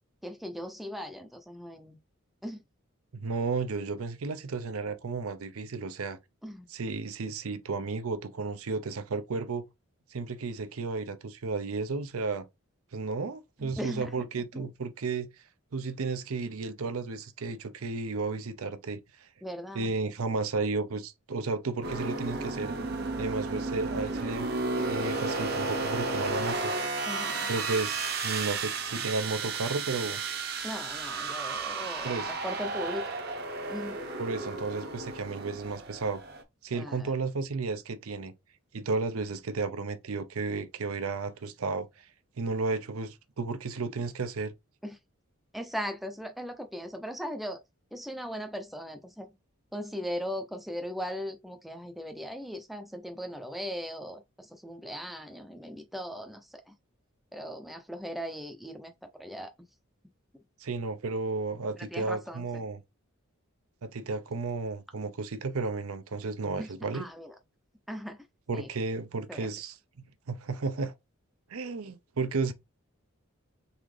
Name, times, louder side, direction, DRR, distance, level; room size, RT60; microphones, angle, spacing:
voice 1, 0.2-2.0 2.4-2.6 6.4-6.7 13.6-14.3 14.5-14.7 19.4-19.9 27.1-27.5 30.6-33.1 33.7-34.0 36.7-37.1 44.8-45.0 45.5-47.6 47.9-49.3 49.7-56.7 57.3-58.9 59.2-59.5 61.8-62.6 66.6-67.3 67.9-68.2 68.5-68.7 69.3-69.5, equal, ahead, 0.5 m, -38 dB
voice 2, 3.1-6.2 6.7-9.6 10.1-12.5 12.9-15.3 15.7-19.3 19.7-22.7 23.2-24.5 24.8-26.7 27.5-30.2 32.0-32.3 34.2-36.2 36.6-38.3 38.7-41.9 42.4-44.5 60.6-62.8 63.8-67.1 68.5-69.8 70.3-70.9 71.5-72.5, right 4 dB, 80° right, 0.6 m, -33 dB
sound 1, 21.8-36.4, right 3 dB, 45° right, 0.8 m, -33 dB
4.0 x 3.6 x 3.2 m
head